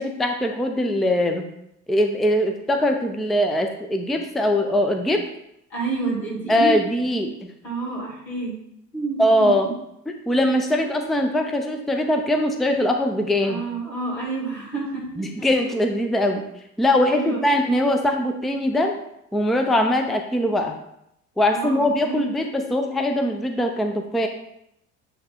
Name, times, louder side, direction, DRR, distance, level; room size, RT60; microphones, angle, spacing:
voice 1, 0.0-1.4 1.9-5.3 6.5-7.3 9.2-9.7 10.3-13.6 15.2-16.5 16.8-19.0 19.3-20.8 21.4-24.3, left 1 dB, ahead, 5 dB, 0.6 m, -21 dB
voice 2, 5.7-6.8 7.6-8.6 8.9-9.5 10.8-10.9 13.4-15.5 17.1-17.4 21.5-22.4, right 3 dB, 85° left, -6 dB, 2.9 m, -29 dB
9.6 x 3.4 x 4.2 m, 0.79 s
figure-of-eight pair, 60°, 48 cm